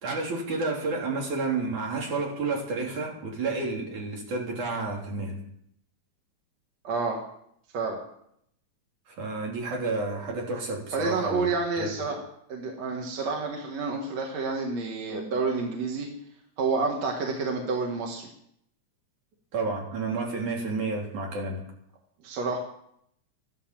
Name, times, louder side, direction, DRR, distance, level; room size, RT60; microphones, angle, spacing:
voice 1, 0.0-5.3 9.1-11.4 11.8-11.9 19.5-21.6, right 3 dB, 80° right, -1 dB, 4.5 m, -30 dB
voice 2, 6.8-7.2 7.7-8.0 10.9-12.2 12.5-16.1 16.6-18.3 22.2-22.6, right 4 dB, 65° right, 1 dB, 2.8 m, -29 dB
13.5 x 11.5 x 7.5 m, 0.72 s
omnidirectional pair, 3.4 m